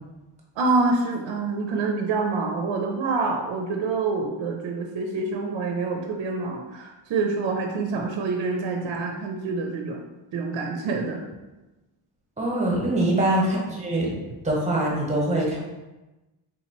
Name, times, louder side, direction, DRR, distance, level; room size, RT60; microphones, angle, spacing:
voice 1, 0.6-10.0 10.3-11.3 13.0-13.2, right 3 dB, 65° right, 2 dB, 0.6 m, -26 dB
voice 2, 12.4-14.1 14.4-15.6, right 1 dB, 15° right, -2 dB, 0.9 m, -23 dB
3.8 x 2.9 x 3.0 m, 1.1 s
cardioid pair, 130°, 48 cm